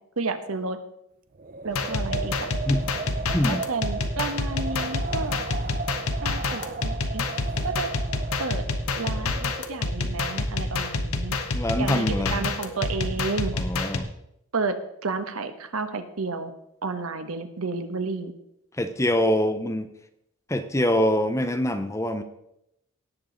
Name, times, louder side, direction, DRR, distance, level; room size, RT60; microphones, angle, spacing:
voice 1, 0.2-0.8 1.6-2.5 3.5-5.3 6.2-7.3 7.6-7.9 8.4-8.6 9.0-11.4 11.8-13.5 14.5-14.8 15.0-16.5 16.8-18.3, right 4 dB, 85° right, 9 dB, 1.1 m, -31 dB
Wind, 1.3-9.8, right 4 dB, 40° right, 0.5 m, -36 dB
sound 1, 1.7-14.0, left 3 dB, 85° left, 1.1 m, -28 dB
voice 2, 3.3-3.6 10.0-10.2 11.5-12.5 13.5-14.1 18.8-19.9 20.5-22.2, left 1 dB, 15° left, 8 dB, 0.7 m, -24 dB
18.0 x 7.0 x 3.9 m, 0.79 s
head